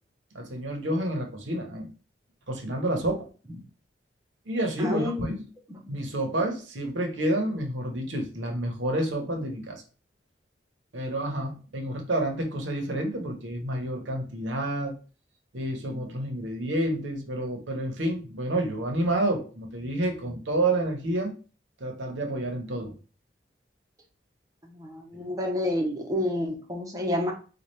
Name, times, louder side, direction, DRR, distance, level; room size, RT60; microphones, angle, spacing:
voice 1, 0.3-1.9 2.5-3.3 4.5-5.4 5.9-9.8 10.9-15.0 15.5-21.3 21.8-22.9, right 1 dB, 90° right, 3 dB, 1.0 m, -29 dB
voice 2, 4.8-5.4 5.7-5.8 24.6-27.3, left 1 dB, 20° right, 1 dB, 0.7 m, -29 dB
4.2 x 2.3 x 3.2 m, 0.36 s
head